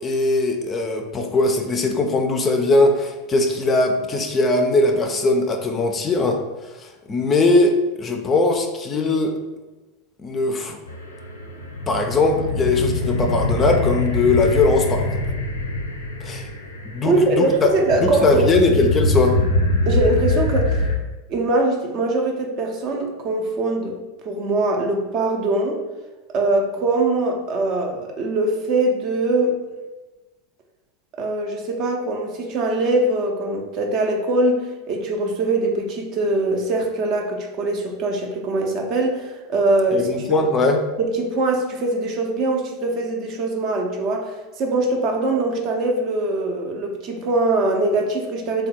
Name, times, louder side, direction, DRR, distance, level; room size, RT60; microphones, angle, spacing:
voice 1, 0.0-6.4 6.8-9.3 10.2-10.8 11.9-15.2 16.2-16.5 16.8-17.7 18.0-19.4 39.9-40.8, left 2 dB, 25° left, 4 dB, 0.4 m, -20 dB
sound 1, 10.9-21.0, left 2 dB, 75° left, 0.5 m, -24 dB
voice 2, 17.0-18.5 19.9-20.9 21.3-24.0 24.2-25.8 26.3-29.6 31.2-40.1 40.4-40.5 41.0-48.7, right 2 dB, 40° right, 2 dB, 0.6 m, -22 dB
3.5 x 2.2 x 4.3 m, 1.2 s
figure-of-eight pair, 80°, 0 cm